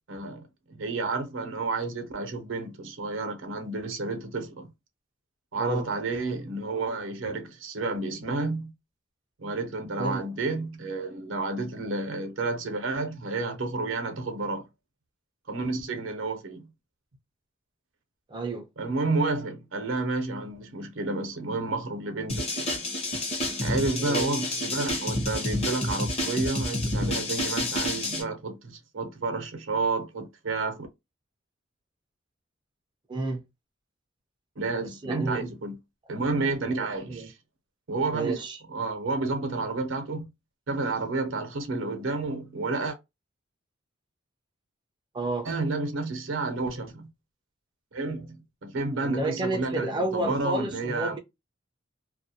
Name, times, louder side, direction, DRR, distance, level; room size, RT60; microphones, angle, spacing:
voice 1, 0.1-4.7 5.5-8.7 9.4-14.7 15.5-16.7 18.8-22.8 23.6-30.9 34.6-35.8 36.1-37.3 37.9-40.3 40.7-43.0 45.5-47.1 47.9-51.2, right 3 dB, 80° right, 0.6 m, -30 dB
voice 2, 18.3-18.7 24.0-24.4 33.1-33.4 34.8-35.4 36.8-37.3 38.1-38.6 45.1-45.5 49.0-51.2, right 2 dB, 25° right, 0.4 m, -31 dB
sound 1, 22.3-28.2, left 1 dB, 35° left, 0.8 m, -29 dB
2.3 x 2.1 x 2.7 m
head